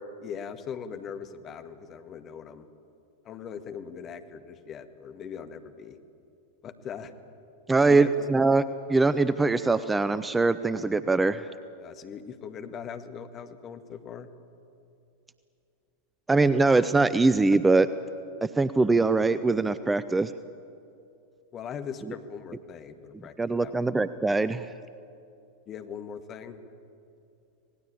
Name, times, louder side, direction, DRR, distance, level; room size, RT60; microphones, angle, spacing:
voice 1, 0.2-2.7 3.2-6.0 6.6-7.1 7.9-8.1 11.8-14.3 21.5-23.8 25.7-26.6, left 7 dB, 30° left, 7 dB, 1.7 m, -40 dB
voice 2, 7.7-8.6 8.9-11.5 16.3-17.9 18.4-20.3 23.4-24.7, right 3 dB, 10° right, 14 dB, 0.6 m, -22 dB
26.5 x 18.5 x 8.9 m, 2.6 s
figure-of-eight pair, 90°, 0 cm